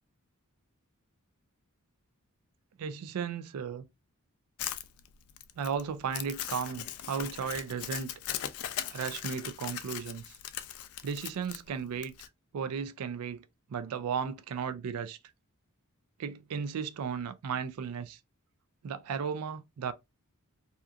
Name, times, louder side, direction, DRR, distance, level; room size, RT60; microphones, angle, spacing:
voice 1, 2.8-3.9 5.6-8.1 8.9-10.4 11.0-12.1 12.5-15.2 16.2-18.2 18.8-19.9, right 6 dB, 80° right, 0.4 m, -35 dB
Crumpling crinkling, 4.6-12.3, left 11 dB, 70° left, 0.3 m, -39 dB
2.8 x 2.4 x 2.3 m
head